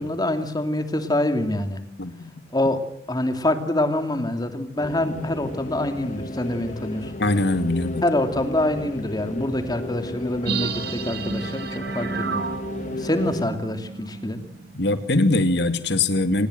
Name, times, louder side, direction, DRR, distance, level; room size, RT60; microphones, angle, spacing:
voice 1, 0.0-1.8 2.5-2.8 3.1-7.1 8.0-12.5 13.0-14.4, left 1 dB, 25° left, 7 dB, 2.7 m, -25 dB
voice 2, 2.0-2.3 7.2-8.0 14.7-16.5, left 2 dB, 65° left, 10 dB, 2.3 m, -22 dB
sound 1, 4.8-13.4, left 2 dB, 45° left, 1.9 m, -35 dB
sound 2, 10.5-14.9 15.2-15.3, right 4 dB, 60° right, 2.2 m, -31 dB
27.5 x 20.0 x 7.9 m, 0.68 s
head